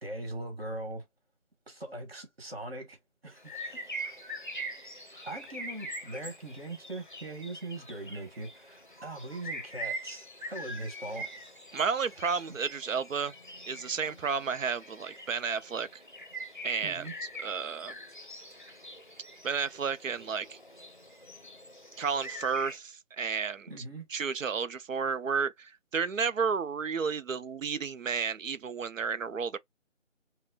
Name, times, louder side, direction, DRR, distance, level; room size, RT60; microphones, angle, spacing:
voice 1, 0.0-1.0 1.7-3.0 3.2-3.8 5.2-11.3 12.2-12.4 16.8-17.1 23.7-24.1, right 2 dB, 50° right, 1.7 m, -40 dB
sound 1, 3.4-22.8, right 1 dB, 40° left, 0.6 m, -43 dB
voice 2, 11.7-13.3 13.7-16.0 16.6-17.1 17.4-17.9 19.4-20.6 22.0-23.7 24.1-29.6, right 6 dB, 85° right, 0.6 m, -32 dB
5.5 x 2.1 x 2.4 m
figure-of-eight pair, 175°, 38 cm